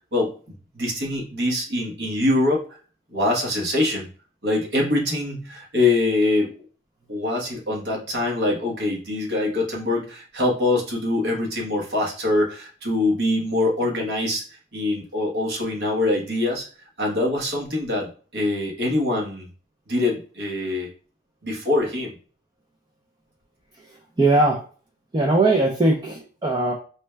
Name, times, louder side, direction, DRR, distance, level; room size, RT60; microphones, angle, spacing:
voice 1, 0.7-2.6 3.1-4.1 4.4-6.5 7.1-14.4 14.7-16.7 17.0-19.5 19.9-20.9 21.4-22.1, left 2 dB, 60° right, -1 dB, 1.0 m, -24 dB
voice 2, 24.2-24.6 25.1-26.7, right 2 dB, 20° right, 0 dB, 0.4 m, -19 dB
4.3 x 2.2 x 3.2 m, 0.40 s
head